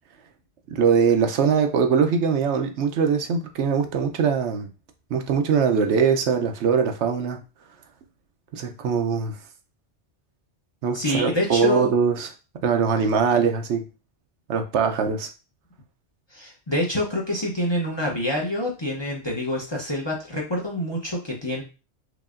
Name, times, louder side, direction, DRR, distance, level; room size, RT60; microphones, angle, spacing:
voice 1, 0.7-4.7 5.1-7.4 8.5-9.3 10.8-12.3 12.6-13.8 14.5-15.3, right 6 dB, 75° right, 6 dB, 0.9 m, -22 dB
voice 2, 10.9-11.9 16.3-21.6, left 1 dB, 25° left, -2 dB, 0.7 m, -26 dB
4.8 x 2.7 x 2.4 m, 0.31 s
omnidirectional pair, 1.2 m